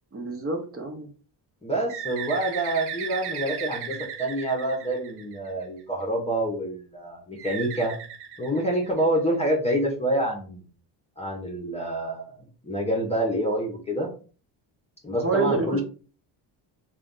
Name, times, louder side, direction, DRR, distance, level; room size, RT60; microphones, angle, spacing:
voice 1, 0.1-1.1 15.2-15.8, right 3 dB, 30° right, 3 dB, 0.9 m, -27 dB
voice 2, 1.6-8.0 8.4-10.6 11.2-12.4 12.6-14.1 15.0-15.8, right 1 dB, 15° left, -1 dB, 0.9 m, -27 dB
Bird, 1.9-5.6 7.4-9.2, right 8 dB, 55° right, 0.7 m, -36 dB
3.3 x 2.5 x 3.9 m, 0.38 s
cardioid pair, 105°, 47 cm